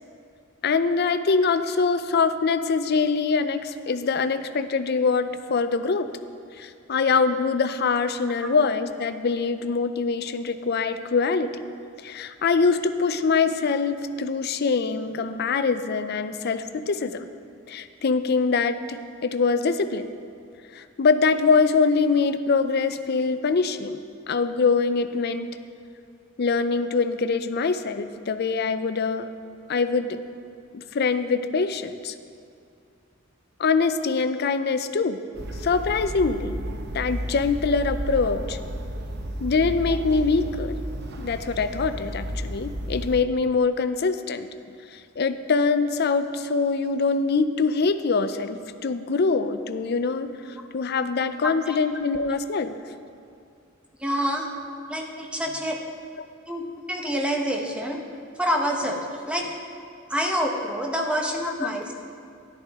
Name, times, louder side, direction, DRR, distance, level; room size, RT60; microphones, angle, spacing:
voice 1, 0.6-6.1 6.6-11.6 12.0-17.3 17.7-20.1 20.7-24.0 24.3-25.5 26.4-29.3 29.7-30.2 30.7-32.1 33.6-35.2 35.6-36.6 36.9-38.6 39.4-40.7 41.2-44.5 44.9-52.8 61.6-61.7, left 4 dB, 50° left, 11 dB, 0.5 m, -24 dB
sound 1, 35.3-43.2, right 1 dB, 55° right, 0.8 m, -32 dB
voice 2, 54.0-54.5 54.9-55.8 56.5-56.6 56.9-58.0 58.4-59.5 60.1-61.9, equal, 5° right, 1 dB, 1.0 m, -27 dB
13.5 x 10.5 x 3.6 m, 2.4 s
head